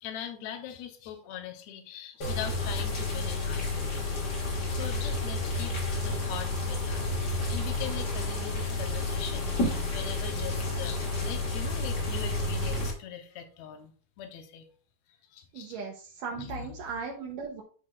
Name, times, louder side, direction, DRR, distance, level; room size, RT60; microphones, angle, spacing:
voice 1, 0.0-13.9 14.2-14.7 15.1-15.8 16.4-16.7, left 9 dB, 75° left, 5 dB, 1.7 m, -42 dB
sound 1, 2.2-12.9, left 2 dB, 40° left, 1.5 m, -30 dB
sound 2, 6.1-12.8, right 1 dB, 60° right, 3.1 m, -48 dB
voice 2, 15.5-17.6, right 5 dB, 75° right, 1 dB, 2.3 m, -37 dB
12.0 x 4.8 x 2.4 m, 0.41 s
omnidirectional pair, 4.3 m